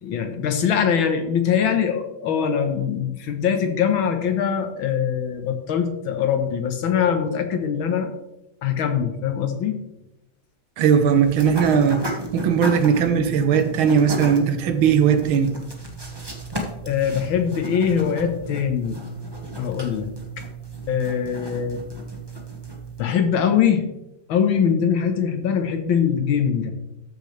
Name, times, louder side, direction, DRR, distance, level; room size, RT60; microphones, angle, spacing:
voice 1, 0.0-8.1 8.6-9.8 16.8-19.0 19.6-20.1 20.9-21.8 23.0-23.8 24.3-26.7, left 7 dB, 80° left, 6 dB, 1.9 m, -22 dB
voice 2, 10.8-12.0 12.3-15.5, right 7 dB, 80° right, 8 dB, 1.7 m, -18 dB
sound 1, 11.1-23.0, right 1 dB, 15° right, 1.2 m, -34 dB
13.5 x 6.6 x 3.3 m, 0.90 s
omnidirectional pair, 2.2 m